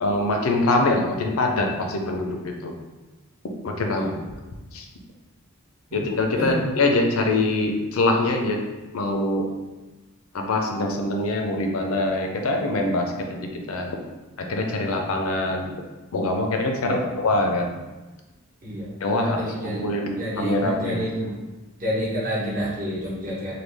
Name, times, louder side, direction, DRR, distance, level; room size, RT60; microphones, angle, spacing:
voice 1, 0.0-2.7 3.6-4.1 4.7-4.8 5.9-8.6 8.9-9.5 10.3-13.9 14.4-15.7 16.1-17.7 19.0-21.0, left 2 dB, 80° left, 3 dB, 0.5 m, -24 dB
voice 2, 3.9-4.2 6.4-6.6 16.8-17.1 18.6-21.3 21.8-23.5, equal, 40° right, -7 dB, 0.9 m, -29 dB
3.2 x 2.3 x 3.3 m, 1.2 s
head